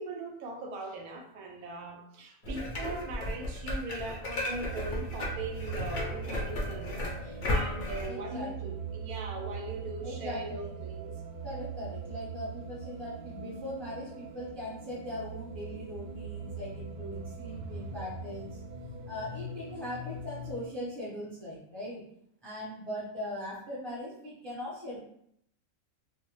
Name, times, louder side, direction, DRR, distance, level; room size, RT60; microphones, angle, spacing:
voice 1, 0.0-11.1 16.4-16.5 17.5-17.9, right 2 dB, 90° right, 2 dB, 1.1 m, -40 dB
sound 1, 2.4-8.1, left 1 dB, 65° left, 0.5 m, -34 dB
sound 2, 4.5-20.7, right 4 dB, 65° right, 0.5 m, -41 dB
voice 2, 8.0-8.8 10.0-10.7 11.4-18.6 19.1-22.0 22.4-25.0, left 1 dB, ahead, -7 dB, 0.5 m, -40 dB
2.5 x 2.1 x 3.0 m, 0.72 s
omnidirectional pair, 1.5 m